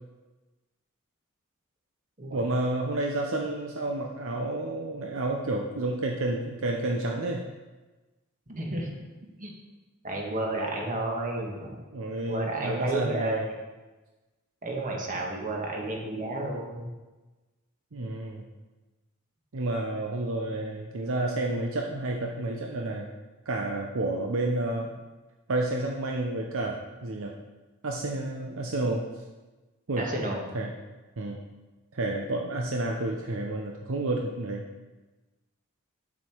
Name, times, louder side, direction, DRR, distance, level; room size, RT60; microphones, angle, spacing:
voice 1, 2.3-7.4 11.9-13.4 17.9-18.5 19.5-23.1 23.5-24.9 25.5-27.3 27.8-29.0 29.9-30.1 30.5-30.7 31.2-31.4 31.9-34.6, right 2 dB, 65° right, 1 dB, 0.8 m, -30 dB
voice 2, 8.5-9.0 9.4-9.5 10.0-11.8 12.3-13.4 14.6-16.8 30.0-30.4, right 2 dB, 40° right, 0 dB, 1.7 m, -31 dB
8.5 x 7.3 x 4.6 m, 1.2 s
head